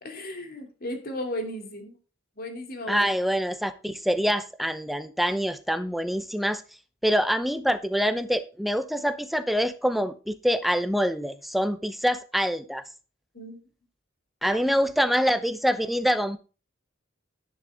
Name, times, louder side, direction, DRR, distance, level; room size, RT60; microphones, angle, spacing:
voice 1, 0.0-2.0 2.4-3.1 13.3-13.6 14.4-14.6, left 1 dB, 50° left, 2.7 m, -35 dB
voice 2, 2.9-6.6 7.0-12.8 14.4-16.4, equal, ahead, 0.8 m, -25 dB
10.5 x 10.5 x 3.5 m
head